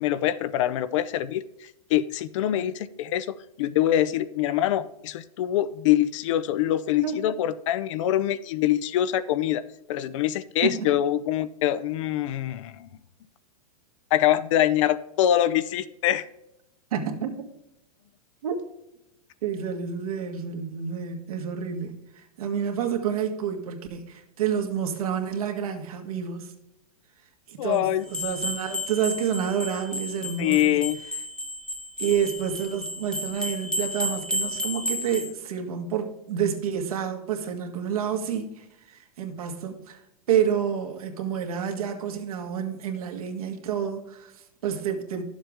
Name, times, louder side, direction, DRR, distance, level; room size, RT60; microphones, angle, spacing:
voice 1, 0.0-9.6 9.9-12.9 14.1-16.2 27.6-28.0 30.4-31.0, left 12 dB, 55° left, 15 dB, 0.6 m, -24 dB
voice 2, 16.9-17.3 18.4-18.5 19.4-26.5 27.5-30.8 32.0-40.0 40.3-45.2, right 8 dB, 75° right, 4 dB, 1.7 m, -29 dB
sound 1, 28.1-35.3, left 1 dB, 5° left, 0.8 m, -32 dB
11.0 x 7.3 x 3.5 m, 0.88 s
hypercardioid pair, 140°, 19 cm